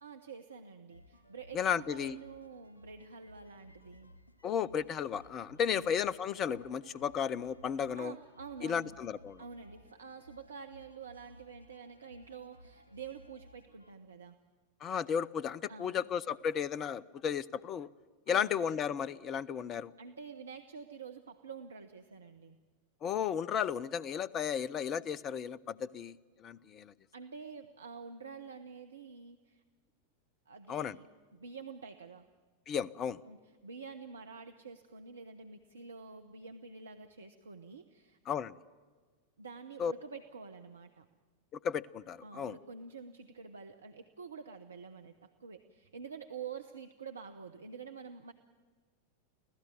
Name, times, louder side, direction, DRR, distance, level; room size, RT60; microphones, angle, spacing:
voice 1, 0.0-4.1 5.7-6.0 7.9-9.0 9.4-14.4 15.7-16.0 18.3-18.6 20.0-22.6 27.1-29.6 30.5-31.1 31.3-32.3 33.3-38.2 39.4-41.1 42.2-48.3, right 5 dB, 70° right, 7 dB, 1.0 m, -48 dB
sound 1, 0.9-13.9, equal, 80° left, 2.0 m, -59 dB
voice 2, 1.5-2.2 4.4-8.1 8.6-9.4 14.8-17.9 18.3-19.9 23.0-26.9 30.7-31.0 32.7-33.2 38.3-38.6 39.8-39.9 41.6-42.6, left 8 dB, 30° left, 22 dB, 0.7 m, -34 dB
25.5 x 16.0 x 9.5 m, 1.5 s
figure-of-eight pair, 90°, 0 cm